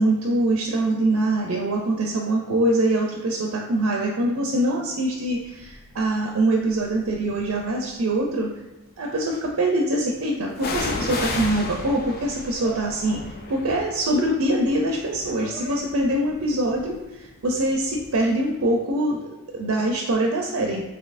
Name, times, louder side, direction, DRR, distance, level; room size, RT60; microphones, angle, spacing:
voice 1, 0.0-8.5 9.0-13.2 13.5-20.8, right 1 dB, 70° right, 0 dB, 0.4 m, -24 dB
sound 1, 5.6-6.0 6.7-7.7 10.6-18.2 18.5-18.6, left 3 dB, 45° left, 0.4 m, -34 dB
sound 2, 10.0-16.3, right 2 dB, 20° left, 1.3 m, -45 dB
4.0 x 2.7 x 2.5 m, 1.0 s
head